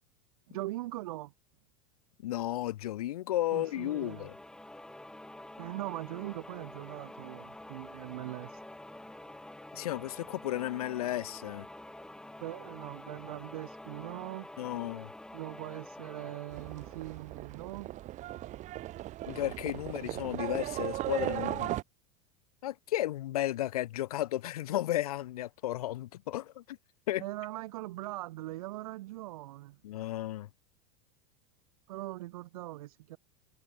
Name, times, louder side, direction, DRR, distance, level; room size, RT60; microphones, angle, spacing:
voice 1, 0.5-1.3 3.5-4.3 5.6-8.5 12.4-14.5 15.3-17.9 27.2-29.8 31.9-33.2, right 17 dB, 75° right, 5.1 m, -41 dB
voice 2, 2.2-4.3 9.7-11.7 14.6-15.1 19.3-21.7 22.6-26.8 27.1-27.2 29.8-30.5, left 14 dB, 85° left, 3.2 m, -33 dB
sound 1, 3.4-18.0, left 1 dB, 5° left, 2.8 m, -48 dB
Livestock farm animals working animals, 16.5-21.8, right 15 dB, 40° right, 2.8 m, -37 dB
supercardioid pair, 130°, 19 cm